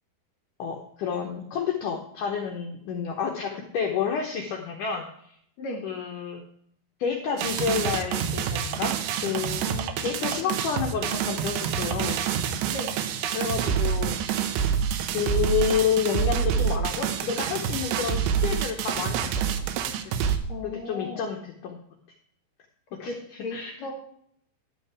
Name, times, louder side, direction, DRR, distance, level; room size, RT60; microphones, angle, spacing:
voice 1, 0.6-5.4 5.8-6.4 7.0-12.2 13.3-14.2 15.1-19.5 19.8-20.1 20.6-21.8 23.0-23.7, left 7 dB, 80° left, 1 dB, 1.9 m, -30 dB
sound 1, 7.4-20.4, right 8 dB, 85° right, 2.9 m, -27 dB
voice 2, 9.6-10.5 12.7-13.0 20.5-21.2 23.0-23.9, left 2 dB, 50° left, 1 dB, 2.9 m, -37 dB
11.0 x 8.5 x 4.7 m, 0.67 s
omnidirectional pair, 5.0 m